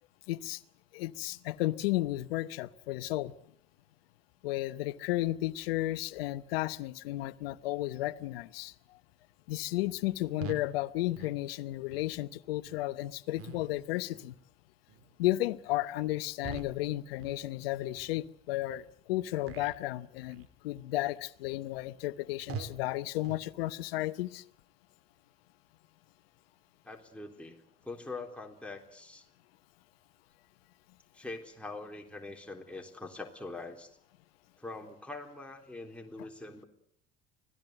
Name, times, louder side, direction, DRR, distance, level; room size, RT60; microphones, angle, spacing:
voice 1, 0.3-0.6 0.9-3.3 4.4-8.7 9.5-14.3 15.2-24.4, left 16 dB, 80° left, 17 dB, 0.9 m, -33 dB
sound 1, 10.4-10.7 11.1-11.4 11.9-12.1 12.7-12.8 13.4-13.8 14.1-14.4 14.9-15.1 15.6-15.8 16.4-16.8 17.2-17.5 17.9-18.1 18.7-18.9 19.4-19.8 20.2-20.5 21.0-21.2 21.7-21.8 22.5-22.8 23.2-23.5, right 6 dB, 50° right, 2.3 m, -45 dB
voice 2, 26.9-29.3 31.1-33.9 34.6-36.7, left 2 dB, 5° left, 1 dB, 3.6 m, -43 dB
25.0 x 17.5 x 7.9 m, 0.66 s
hypercardioid pair, 70°, 29 cm